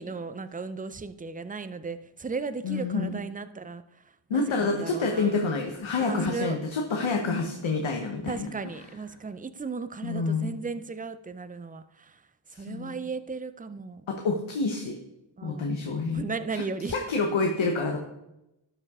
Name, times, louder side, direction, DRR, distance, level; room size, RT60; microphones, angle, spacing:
voice 1, 0.0-3.8 4.3-5.4 6.0-6.6 8.3-12.2 12.5-14.0 15.4-15.8 16.1-16.9, right 4 dB, 20° right, 12 dB, 0.5 m, -36 dB
voice 2, 2.6-3.2 4.3-8.5 10.0-10.6 12.5-13.0 14.1-15.0 15.4-18.0, left 3 dB, 80° left, 3 dB, 1.0 m, -28 dB
11.5 x 5.6 x 3.6 m, 0.90 s
cardioid pair, 50°, 47 cm